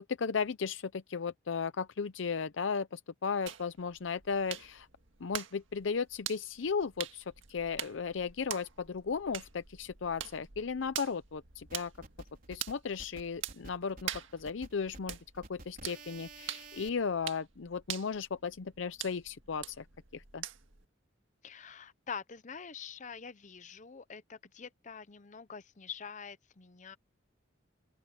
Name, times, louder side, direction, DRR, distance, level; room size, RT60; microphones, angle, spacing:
voice 1, 0.0-4.9 5.2-11.9 12.5-19.9 20.1-20.4, left 5 dB, 75° left, 0.6 m, -35 dB
sound 1, 3.5-20.9, right 10 dB, 90° right, 1.8 m, -45 dB
sound 2, 11.7-16.9, right 2 dB, 45° right, 4.2 m, -51 dB
voice 2, 21.4-27.0, left 6 dB, 40° left, 0.7 m, -45 dB
open air
head